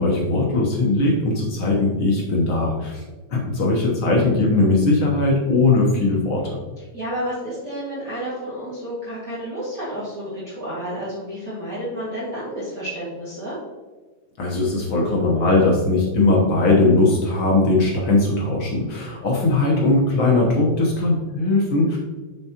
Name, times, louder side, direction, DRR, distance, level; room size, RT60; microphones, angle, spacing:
voice 1, 0.0-3.0 3.3-6.6 14.4-22.0, left 2 dB, 60° left, -2 dB, 1.6 m, -19 dB
voice 2, 6.9-13.6 19.8-19.9, equal, 40° right, -9 dB, 2.1 m, -30 dB
7.1 x 6.7 x 2.9 m, 1.3 s
omnidirectional pair, 3.3 m